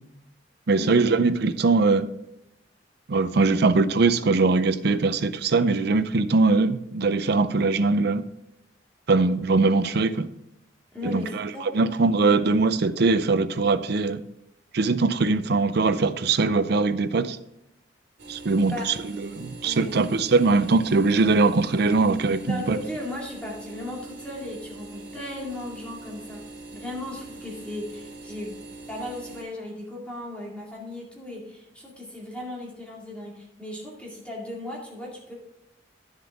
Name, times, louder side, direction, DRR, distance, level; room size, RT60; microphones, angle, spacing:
voice 1, 0.7-2.1 3.1-8.2 9.1-10.3 11.0-14.2 14.7-17.4 18.3-18.9 19.3-22.8, right 3 dB, 65° right, 0.6 m, -21 dB
voice 2, 10.9-11.7 18.7-18.9 19.6-20.0 22.4-26.4 26.7-28.6 28.9-35.3, left 1 dB, 5° left, 2.2 m, -36 dB
sound 1, 18.2-29.4, right 2 dB, 80° right, 2.5 m, -43 dB
11.5 x 7.3 x 3.6 m
head